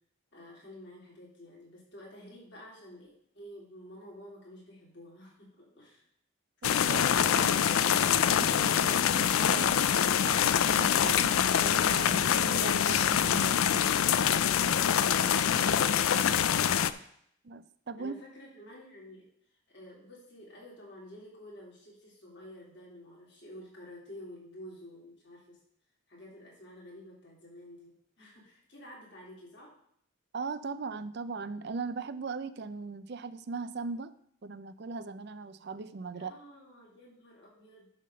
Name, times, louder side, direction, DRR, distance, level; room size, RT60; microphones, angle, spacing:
voice 1, 0.3-6.0 18.0-19.3 19.7-25.6 26.1-29.7 36.1-37.9, equal, 55° left, -4 dB, 3.3 m, -50 dB
sound 1, 6.6-16.9, left 9 dB, 80° left, 0.4 m, -25 dB
voice 2, 6.6-14.0 15.4-15.7 17.4-18.1 30.3-34.1 34.4-36.3, right 4 dB, 50° right, 13 dB, 0.5 m, -39 dB
11.0 x 3.6 x 6.7 m, 0.68 s
head